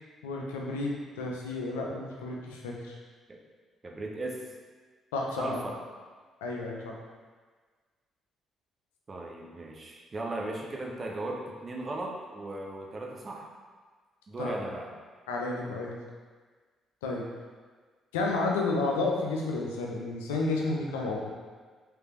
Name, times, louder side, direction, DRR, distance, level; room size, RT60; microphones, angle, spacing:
voice 1, 0.2-3.0 5.1-5.6 6.4-6.9 14.4-14.5 15.3-16.0 17.0-17.2 18.1-21.3, left 3 dB, 85° left, -1 dB, 0.5 m, -31 dB
voice 2, 3.8-4.4 5.4-5.8 9.1-13.5 14.3-14.9, right 2 dB, 40° right, -1 dB, 0.7 m, -36 dB
3.3 x 3.2 x 3.0 m, 1.5 s
hypercardioid pair, 50°, 0 cm